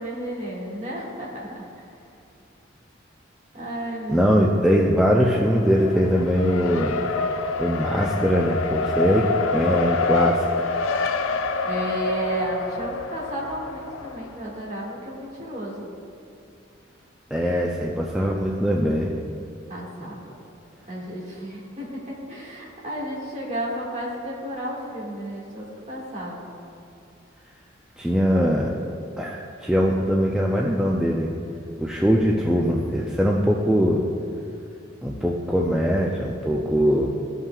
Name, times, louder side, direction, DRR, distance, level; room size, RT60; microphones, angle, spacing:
voice 1, 0.0-1.7 3.5-4.5 11.6-15.9 19.7-20.3 20.9-21.9 22.3-26.5, right 1 dB, 35° right, -5 dB, 1.8 m, -32 dB
voice 2, 4.1-7.0 7.6-10.5 17.3-19.1 28.0-28.7 29.2-31.3 31.8-34.0 35.0-37.1, equal, 5° right, -3 dB, 0.4 m, -21 dB
Race car auto racing, 5.4-14.4, left 4 dB, 80° left, 0.4 m, -27 dB
15.0 x 5.6 x 2.3 m, 2.7 s
head